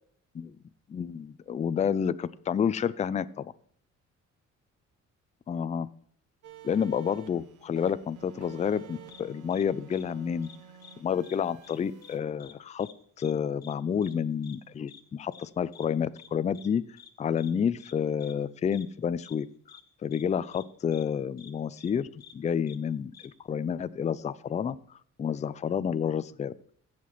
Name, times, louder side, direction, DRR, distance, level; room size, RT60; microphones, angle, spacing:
voice 1, 0.9-3.5 5.5-5.9 6.6-10.5 11.0-12.9 13.2-16.8 17.2-19.5 20.0-23.1 23.5-24.8 25.2-26.5, left 7 dB, 25° left, 16 dB, 0.4 m, -29 dB
sound 1, 6.4-12.2, right 9 dB, 80° right, 1.0 m, -50 dB
sound 2, 9.1-9.2 9.5-9.6 9.9-10.0 10.4-11.0 11.2-11.4 11.6-12.1 12.4-12.5 12.8-12.9 13.2-13.3 13.6-13.7 14.0-14.1 14.4-14.6 14.9-15.0 15.3-15.5 15.7-15.9 16.2-16.3 16.5-16.7 17.0-17.1 17.4-17.5 17.8-17.9 18.2-18.3 18.7-18.8 19.2-19.4 19.7-19.8 20.1-20.2 20.5-20.6 20.9-21.0 21.4-21.5 21.8-21.9 22.2-22.3 22.7-22.8 23.1-23.3, left 8 dB, 60° left, 1.1 m, -51 dB
15.5 x 5.9 x 3.1 m, 0.64 s
cardioid pair, 90°, 30 cm